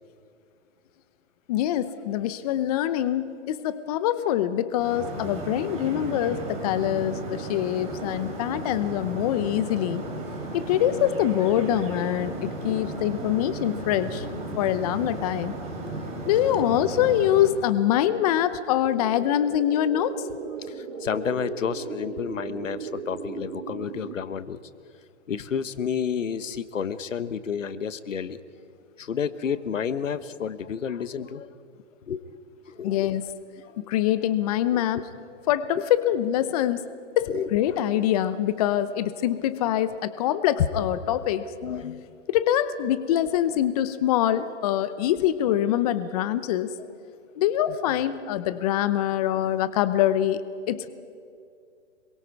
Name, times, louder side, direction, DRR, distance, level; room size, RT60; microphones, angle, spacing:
voice 1, 1.5-10.0 10.5-14.3 14.6-15.5 16.2-20.2 32.8-33.2 33.8-35.1 35.5-36.9 37.2-41.5 42.3-46.7 47.4-50.4 50.7-50.9, left 11 dB, 30° left, 13 dB, 0.8 m, -24 dB
sound 1, 4.8-17.5, right 2 dB, 15° right, 4.3 m, -35 dB
voice 2, 12.7-13.1 15.9-16.1 20.6-24.6 25.3-28.4 29.0-31.5 32.1-32.2 32.7-33.1 33.6-33.9 34.7-34.8 37.3-37.5 41.6-42.0 44.2-44.3, left 7 dB, 85° left, 13 dB, 1.3 m, -31 dB
sound 2, 18.9-24.1, right 5 dB, 50° right, 2.9 m, -37 dB
26.0 x 23.0 x 4.8 m, 2.4 s
hypercardioid pair, 145°, 37 cm